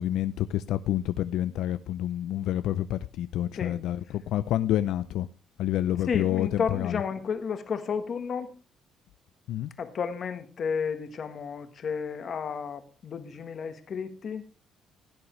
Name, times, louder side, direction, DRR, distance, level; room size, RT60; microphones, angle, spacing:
voice 1, 0.0-5.3 5.6-7.0 9.5-9.7, left 12 dB, 80° left, 0.4 m, -28 dB
voice 2, 6.1-8.5 9.8-14.4, left 6 dB, 40° left, 1.4 m, -32 dB
16.5 x 9.8 x 3.1 m
cardioid pair, 160°, 0 cm